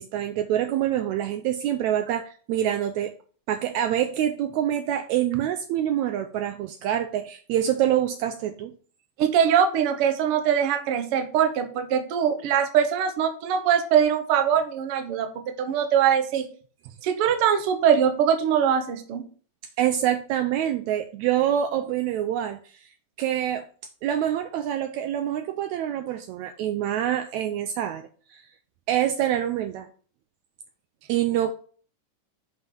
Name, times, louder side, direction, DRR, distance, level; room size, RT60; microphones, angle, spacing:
voice 1, 0.0-3.1 3.5-8.8 19.8-22.9 23.2-23.7 24.0-28.4 28.9-29.9 31.1-31.5, right 11 dB, 80° right, 7 dB, 1.8 m, -26 dB
voice 2, 9.2-15.3 15.6-16.5 17.0-19.2, right 8 dB, 60° right, 7 dB, 1.5 m, -22 dB
7.8 x 5.4 x 3.8 m, 0.42 s
omnidirectional pair, 3.6 m